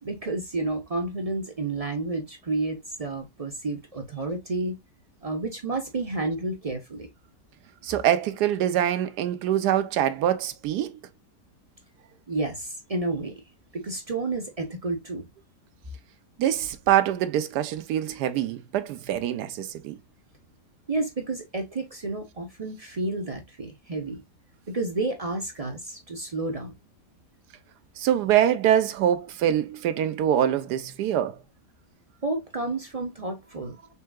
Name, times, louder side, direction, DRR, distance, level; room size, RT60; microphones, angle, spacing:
voice 1, 0.0-4.7 5.2-7.1 12.3-13.3 13.7-15.3 20.9-24.2 24.7-26.7 32.2-33.9, right 2 dB, 50° right, 0.4 m, -30 dB
voice 2, 7.8-10.9 16.4-20.0 28.0-31.4, right 11 dB, 75° right, 1.1 m, -24 dB
5.5 x 3.6 x 2.2 m
omnidirectional pair, 1.8 m